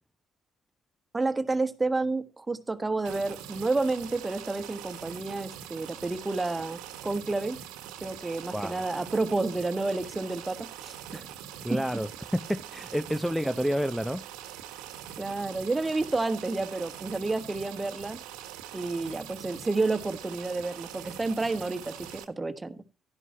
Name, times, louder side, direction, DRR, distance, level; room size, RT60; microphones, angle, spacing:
voice 1, 1.1-7.6 8.0-11.3 11.7-11.8 15.2-18.2 18.7-22.8, right 3 dB, 25° right, 1.4 m, -30 dB
sound 1, 3.0-22.2, right 10 dB, 75° right, 1.3 m, -43 dB
voice 2, 8.5-8.9 11.6-14.2, equal, ahead, 0.7 m, -29 dB
12.0 x 10.5 x 2.8 m
hypercardioid pair, 45°, 0 cm